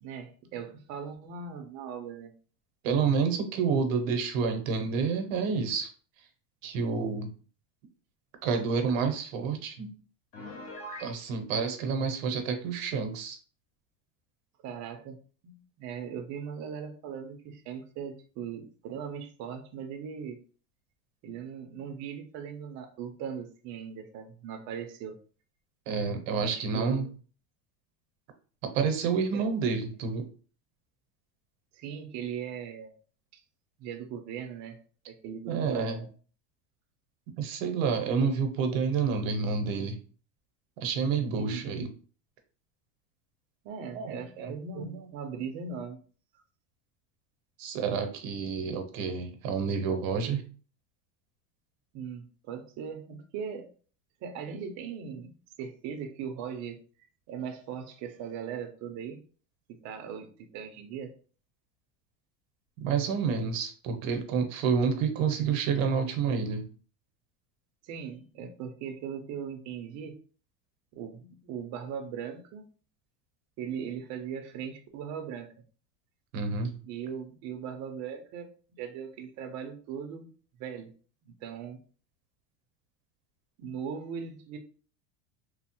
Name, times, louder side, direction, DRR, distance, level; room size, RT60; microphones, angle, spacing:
voice 1, 0.0-2.3 14.6-15.2 15.4-20.4 21.2-25.2 26.4-27.1 29.3-29.4 31.7-33.0 33.3-33.4 33.8-34.8 35.1-36.1 41.3-41.6 43.6-46.0 51.9-53.7 54.2-55.3 55.6-56.8 57.3-59.2 59.7-61.1 67.8-70.2 70.9-72.7 73.6-75.5 76.8-80.3 80.6-80.9 81.4-81.8 83.6-84.6, right 7 dB, 45° right, 5 dB, 0.5 m, -39 dB
voice 2, 2.8-5.9 6.6-7.3 8.4-9.9 11.0-13.4 25.9-27.1 28.6-30.3 35.5-36.0 37.4-40.0 40.8-41.9 43.9-45.0 47.6-50.4 62.8-66.7 76.3-76.8, right 5 dB, 90° right, 5 dB, 0.8 m, -29 dB
Piano, 10.3-11.2, left 1 dB, 35° left, 0.8 m, -41 dB
3.1 x 2.0 x 2.9 m, 0.40 s
supercardioid pair, 135°, 38 cm